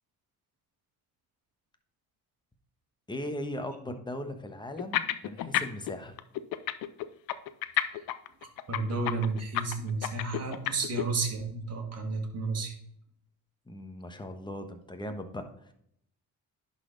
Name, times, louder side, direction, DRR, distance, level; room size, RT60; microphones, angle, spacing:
voice 1, 3.1-6.1 13.7-15.4, left 1 dB, 10° left, 6 dB, 1.2 m, -38 dB
sound 1, 4.8-5.9 6.2-11.0, left 14 dB, 70° left, 0.7 m, -30 dB
voice 2, 8.7-12.7, right 4 dB, 40° right, 2 dB, 2.1 m, -32 dB
11.0 x 4.3 x 4.0 m, 0.71 s
supercardioid pair, 85°, 37 cm